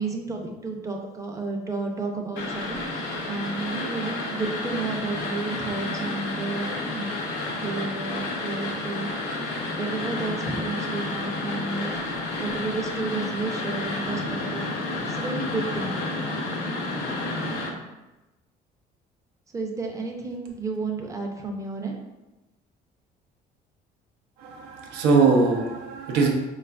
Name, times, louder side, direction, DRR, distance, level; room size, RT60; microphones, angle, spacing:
voice 1, 0.0-7.1 7.6-9.1 9.8-11.9 12.4-14.7 15.0-16.0 19.5-21.9, right 3 dB, 20° right, 2 dB, 0.5 m, -32 dB
sound 1, 2.4-17.7, left 2 dB, 85° left, 0.6 m, -30 dB
voice 2, 24.4-26.3, right 4 dB, 90° right, 2 dB, 0.6 m, -21 dB
4.0 x 2.4 x 2.2 m, 1.0 s
cardioid pair, 110°, 17 cm